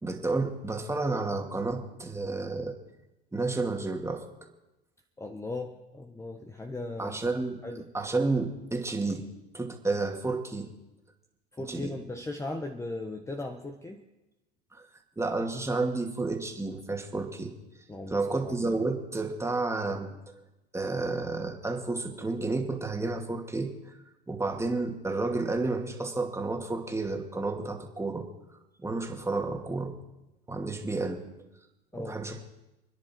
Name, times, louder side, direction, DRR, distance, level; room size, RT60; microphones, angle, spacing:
voice 1, 0.0-2.8 3.3-4.3 7.0-7.6 7.9-9.3 9.5-10.7 11.7-11.9 14.7-14.8 15.2-17.5 18.1-20.2 20.7-24.0 24.3-28.3 28.8-30.0 30.5-31.2 31.9-32.4, right 3 dB, 10° right, 3 dB, 2.5 m, -31 dB
voice 2, 5.2-7.2 7.6-7.8 11.5-14.0 17.9-18.8 31.9-32.2, left 2 dB, 10° left, 4 dB, 1.3 m, -38 dB
29.0 x 10.5 x 4.6 m, 1.0 s
hypercardioid pair, 90°, 29 cm